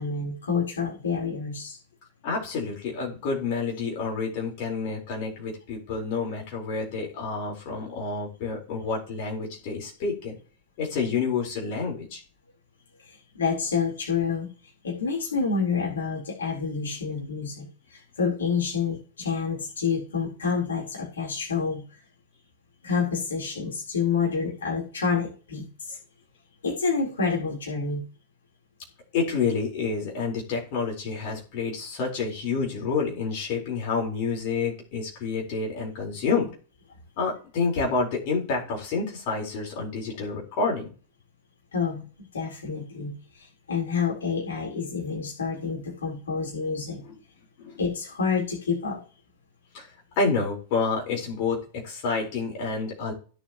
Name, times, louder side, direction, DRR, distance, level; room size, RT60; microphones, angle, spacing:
voice 1, 0.0-1.8 13.1-14.5 14.8-22.0 22.8-26.0 26.6-28.0 41.7-47.0 47.8-49.0, left 5 dB, 70° left, -3 dB, 4.2 m, -28 dB
voice 2, 2.2-10.3 10.8-12.2 29.1-36.5 37.2-40.9 47.0-47.1 47.6-47.8 49.7-49.9 50.2-53.1, left 4 dB, 45° left, -1 dB, 4.7 m, -29 dB
16.5 x 7.3 x 3.2 m, 0.38 s
figure-of-eight pair, 90°, 0 cm